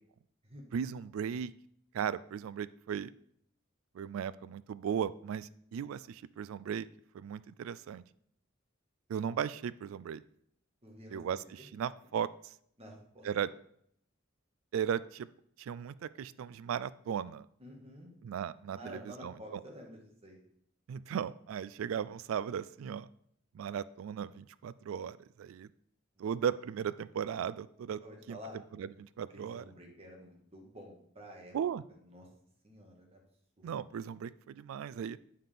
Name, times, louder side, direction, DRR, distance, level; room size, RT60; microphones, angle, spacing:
voice 1, 0.7-1.5 1.9-3.1 3.9-6.9 7.1-8.0 9.1-10.2 11.1-12.5 13.2-13.5 14.7-15.3 15.6-17.5 18.2-19.6 20.9-23.1 23.5-25.7 26.2-28.0 28.3-28.4 28.7-29.7 31.5-31.8 33.6-35.2, right 8 dB, 85° right, 18 dB, 0.3 m, -36 dB
voice 2, 10.8-11.2 11.6-11.7 12.8-13.2 17.6-18.1 18.7-20.4 26.2-26.3 28.0-28.6 29.3-31.5 32.0-32.3 32.6-33.2 33.6-33.7, equal, 30° right, 0 dB, 1.5 m, -50 dB
7.5 x 5.7 x 3.5 m, 0.69 s
head